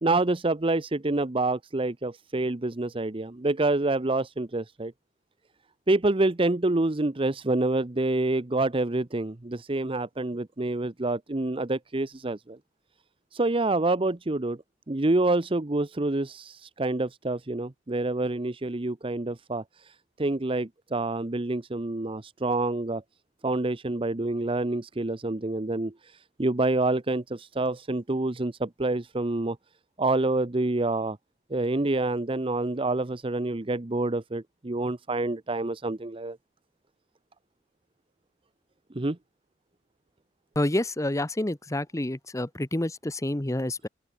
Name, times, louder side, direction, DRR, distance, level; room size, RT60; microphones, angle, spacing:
voice 1, 0.0-4.9 5.9-12.6 13.3-14.6 14.9-23.0 23.4-29.6 30.0-31.2 31.5-36.4 38.9-39.2, right 2 dB, 30° right, 0.8 m, -27 dB
voice 2, 40.5-43.9, left 1 dB, 15° left, 1.0 m, -28 dB
open air
head